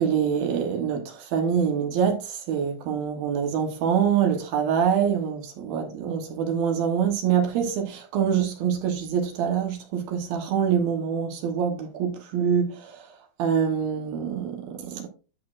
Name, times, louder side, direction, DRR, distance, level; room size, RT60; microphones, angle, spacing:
voice 1, 0.0-13.1 13.4-15.1, right 7 dB, 70° right, 2.6 m, -25 dB
10.5 x 6.8 x 2.5 m
omnidirectional pair, 5.1 m